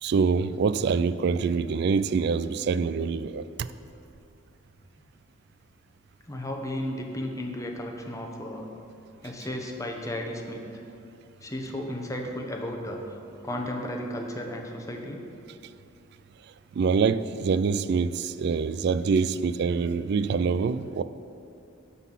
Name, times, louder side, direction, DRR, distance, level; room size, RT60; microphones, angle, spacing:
voice 1, 0.0-3.7 16.7-21.0, right 5 dB, 55° right, 14 dB, 0.3 m, -25 dB
voice 2, 6.3-8.7 9.2-10.8 11.4-13.0 13.4-15.2, left 1 dB, 15° left, 2 dB, 0.8 m, -34 dB
11.5 x 4.1 x 7.3 m, 2.7 s
head